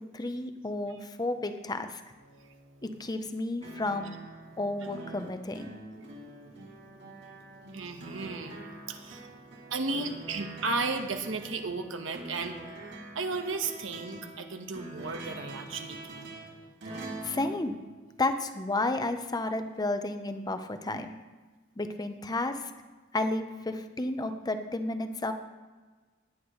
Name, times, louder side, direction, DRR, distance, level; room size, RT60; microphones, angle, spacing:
voice 1, 0.1-2.0 2.8-4.2 4.6-5.8 17.0-17.8 18.2-21.1 21.8-22.7 23.1-25.3, left 2 dB, 20° left, 8 dB, 0.7 m, -32 dB
voice 2, 2.2-2.8 4.5-4.6 6.0-12.5 13.1-16.4, right 3 dB, 85° right, 5 dB, 1.2 m, -36 dB
sound 1, 3.6-18.5 19.8-19.9, right 2 dB, 60° right, 2.9 m, -45 dB
17.0 x 10.0 x 3.2 m, 1.3 s
head